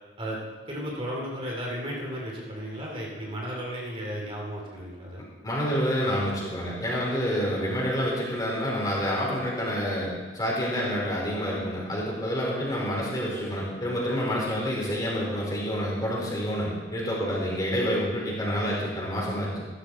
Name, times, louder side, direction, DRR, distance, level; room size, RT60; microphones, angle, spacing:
voice 1, 0.7-5.2, equal, 30° right, -2 dB, 2.6 m, -34 dB
voice 2, 5.4-19.7, equal, 20° left, -4 dB, 4.4 m, -28 dB
15.0 x 12.5 x 4.2 m, 1.4 s
head